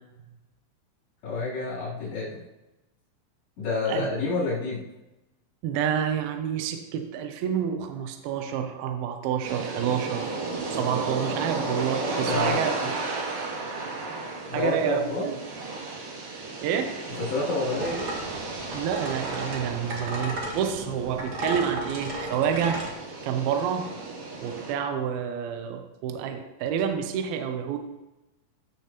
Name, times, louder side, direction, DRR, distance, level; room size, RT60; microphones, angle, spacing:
voice 1, 1.2-2.3 3.6-4.8 12.3-12.6 14.5-15.4 17.3-18.1, left 3 dB, 85° left, -10 dB, 5.5 m, -28 dB
voice 2, 5.6-10.3 10.7-13.0 14.5-15.4 16.6-17.0 18.7-22.8 23.2-23.9 24.4-27.8, right 8 dB, 80° right, 5 dB, 2.5 m, -28 dB
sound 1, 9.4-24.7, right 3 dB, 65° right, 3.0 m, -34 dB
sound 2, 17.7-22.9, right 1 dB, 45° right, 1.4 m, -35 dB
15.0 x 6.7 x 3.0 m, 1.0 s
omnidirectional pair, 4.5 m